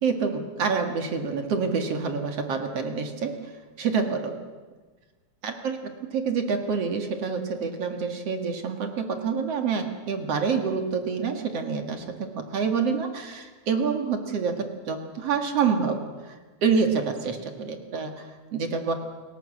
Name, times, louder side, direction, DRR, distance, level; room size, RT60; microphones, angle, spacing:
voice 1, 0.0-3.4 3.8-4.3 5.4-18.9, right 5 dB, 55° right, 5 dB, 2.7 m, -27 dB
29.5 x 18.0 x 7.8 m, 1.4 s
omnidirectional pair, 3.6 m